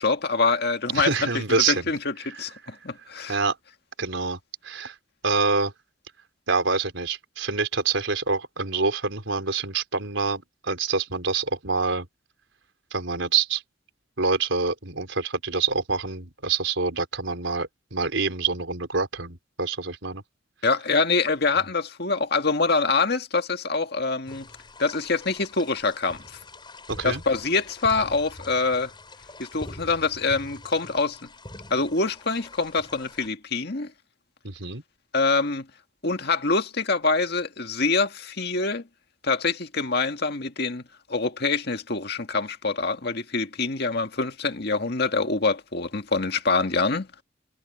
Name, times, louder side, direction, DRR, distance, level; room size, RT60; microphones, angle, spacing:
voice 1, 0.0-3.4 20.6-24.5 24.8-26.2 27.0-28.9 29.4-31.2 31.7-33.9 35.1-35.7 36.0-38.8 39.2-40.8 41.1-47.1, left 3 dB, 55° left, 1.9 m, -25 dB
voice 2, 0.9-1.9 2.3-2.4 3.3-3.6 4.0-4.4 4.6-4.9 5.2-5.7 6.5-12.1 12.9-13.6 14.2-20.2 26.9-27.2 34.4-34.8, right 4 dB, 75° right, 4.1 m, -26 dB
sound 1, 24.3-33.3, left 2 dB, 25° left, 6.9 m, -44 dB
head